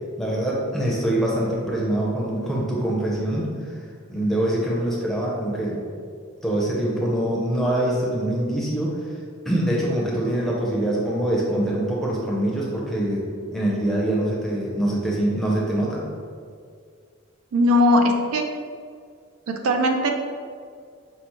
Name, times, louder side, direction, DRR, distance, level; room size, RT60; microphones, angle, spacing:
voice 1, 0.2-3.8 4.1-5.8 6.4-9.0 9.4-13.3 13.5-16.0, right 1 dB, ahead, -5 dB, 0.6 m, -24 dB
voice 2, 17.5-18.5 19.5-20.1, left 1 dB, 85° right, 4 dB, 0.4 m, -19 dB
5.3 x 2.0 x 3.0 m, 2.2 s
head